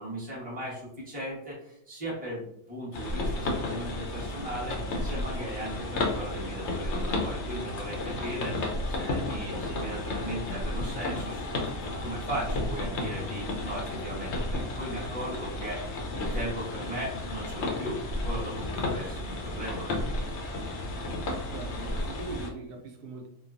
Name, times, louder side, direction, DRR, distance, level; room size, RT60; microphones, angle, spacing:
voice 1, 0.0-8.6 8.9-18.0 18.2-20.2, right 1 dB, 5° right, -8 dB, 0.9 m, -37 dB
sound 1, 2.9-22.5, left 2 dB, 65° left, 0.7 m, -33 dB
voice 2, 21.5-23.3, right 3 dB, 85° right, 2 dB, 1.1 m, -40 dB
3.1 x 2.3 x 2.4 m, 0.74 s
omnidirectional pair, 1.6 m